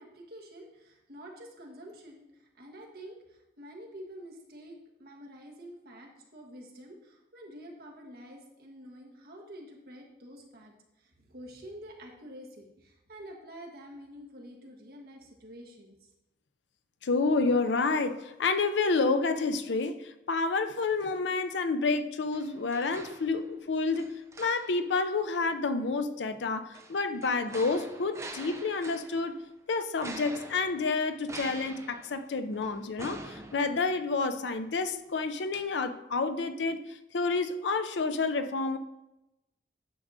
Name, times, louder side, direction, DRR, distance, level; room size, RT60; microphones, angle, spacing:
voice 1, 0.0-10.7 11.0-16.0, equal, 55° right, 0 dB, 1.3 m, -48 dB
voice 2, 17.0-29.4 29.7-38.8, left 3 dB, 75° left, 9 dB, 0.5 m, -29 dB
sound 1, 22.3-23.6 24.0-24.9 26.7-29.4 30.0-34.3 34.7-34.8, right 2 dB, 15° right, 0.5 m, -46 dB
9.5 x 6.2 x 2.7 m, 0.94 s
head